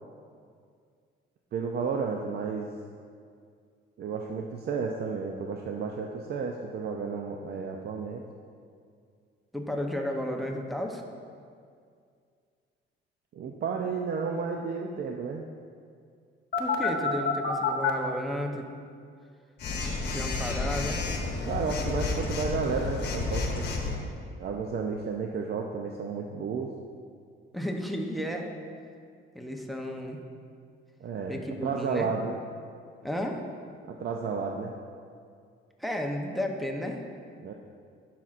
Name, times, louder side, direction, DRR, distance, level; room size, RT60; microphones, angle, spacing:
voice 1, 1.5-2.7 4.0-8.3 13.3-15.5 21.4-23.7 24.4-26.7 31.0-32.4 33.9-34.7 37.4-37.5, right 5 dB, 50° right, 2 dB, 0.5 m, -32 dB
voice 2, 9.5-11.0 16.6-18.7 20.1-21.0 27.5-28.5 29.3-30.2 31.3-32.1 33.0-33.4 35.8-37.0, left 1 dB, ahead, 2 dB, 0.7 m, -33 dB
Telephone, 16.5-17.9 19.6-24.0, left 4 dB, 50° left, 1.0 m, -30 dB
11.5 x 5.8 x 2.5 m, 2.2 s
cardioid pair, 120°, 21 cm